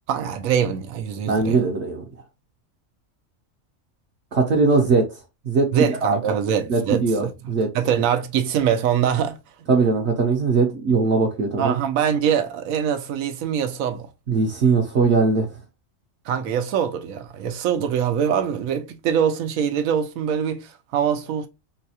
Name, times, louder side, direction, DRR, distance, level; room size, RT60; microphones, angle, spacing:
voice 1, 0.1-1.6 5.7-7.3 7.7-9.4 11.6-14.1 16.3-21.5, right 8 dB, 85° right, 1.0 m, -23 dB
voice 2, 1.2-2.0 4.3-5.1 5.5-6.3 6.7-7.7 9.7-11.8 14.3-15.5, right 4 dB, 60° right, 0.9 m, -20 dB
3.9 x 2.2 x 2.8 m
omnidirectional pair, 1.4 m